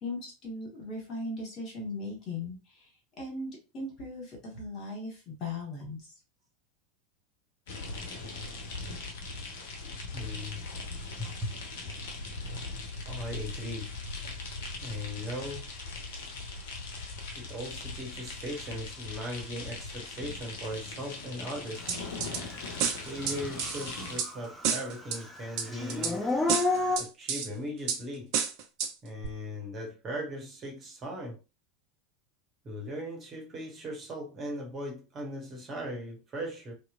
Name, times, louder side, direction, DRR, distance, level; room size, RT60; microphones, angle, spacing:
voice 1, 0.0-2.9 3.2-6.1, left 2 dB, 40° left, 1.4 m, -38 dB
sound 1, 7.7-24.2, left 3 dB, 60° left, 0.6 m, -40 dB
voice 2, 10.1-10.6 11.2-11.6 13.1-13.9 14.8-15.6 17.4-21.9 23.0-26.3 27.0-28.3 29.0-31.4 32.6-36.7, equal, 30° right, 1.0 m, -38 dB
sound 2, 21.9-22.4 22.8-24.3 24.6-25.2 25.6-26.1 26.5-27.5 27.9-28.0 28.3-28.9 29.2-29.3, right 7 dB, 50° right, 0.4 m, -30 dB
Dog / Siren, 22.6-22.7 23.2-24.6 24.9-27.0, left 3 dB, 5° left, 0.7 m, -30 dB
2.9 x 2.0 x 2.5 m
figure-of-eight pair, 80°, 0 cm